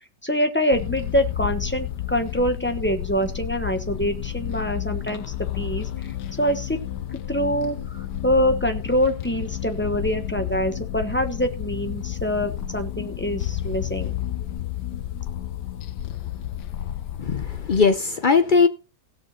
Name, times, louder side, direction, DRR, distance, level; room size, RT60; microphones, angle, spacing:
voice 1, 0.2-5.2 5.5-5.9 6.4-6.8 7.3-14.1, equal, 10° left, 1.0 m, -25 dB
sound 1, 0.7-17.9, left 11 dB, 80° left, 1.4 m, -31 dB
voice 2, 17.2-18.7, left 5 dB, 65° left, 0.5 m, -19 dB
17.0 x 6.6 x 4.2 m
omnidirectional pair, 1.8 m